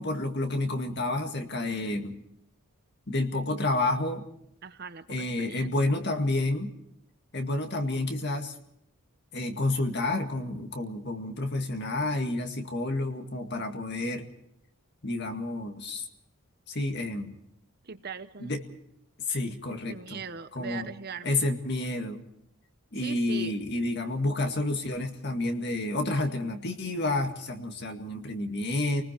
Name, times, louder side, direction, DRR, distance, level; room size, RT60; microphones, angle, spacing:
voice 1, 0.0-2.2 3.1-4.2 5.1-6.7 7.3-8.5 9.3-14.3 15.0-16.1 16.7-17.4 18.4-18.6 19.3-20.2 20.6-20.9 21.2-22.2 22.9-29.0, left 2 dB, 50° left, 4 dB, 2.0 m, -30 dB
voice 2, 4.6-5.9 17.8-18.5 19.7-21.4 23.0-23.5, right 5 dB, 45° right, 12 dB, 0.8 m, -40 dB
29.5 x 20.0 x 4.5 m, 0.73 s
head